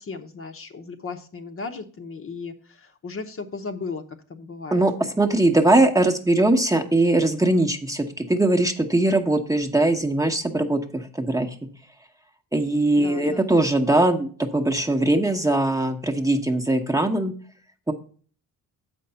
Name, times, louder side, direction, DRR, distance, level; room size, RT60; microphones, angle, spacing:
voice 1, 0.0-4.0 4.3-4.8 13.0-13.5, left 4 dB, 35° left, 6 dB, 0.9 m, -36 dB
voice 2, 5.2-11.5 12.5-17.3 17.9-18.0, right 2 dB, 10° right, 4 dB, 0.9 m, -21 dB
7.7 x 5.2 x 5.6 m, 0.43 s
cardioid pair, 100°, 37 cm